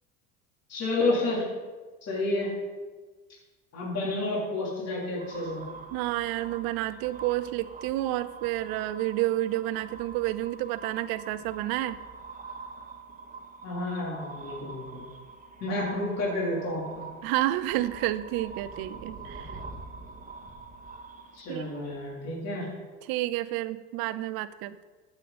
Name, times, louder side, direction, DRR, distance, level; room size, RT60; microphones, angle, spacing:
voice 1, 0.7-1.4 2.0-2.5 3.7-5.6 13.6-15.0 15.6-17.1 21.3-22.7, left 2 dB, 40° left, -5 dB, 3.7 m, -30 dB
sound 1, 5.2-22.2, right 4 dB, 20° right, 1.8 m, -45 dB
voice 2, 5.9-12.0 17.2-19.6 21.5-21.6 23.1-24.8, right 15 dB, 65° right, 15 dB, 0.6 m, -30 dB
14.0 x 7.8 x 4.2 m, 1.4 s
supercardioid pair, 95°, 39 cm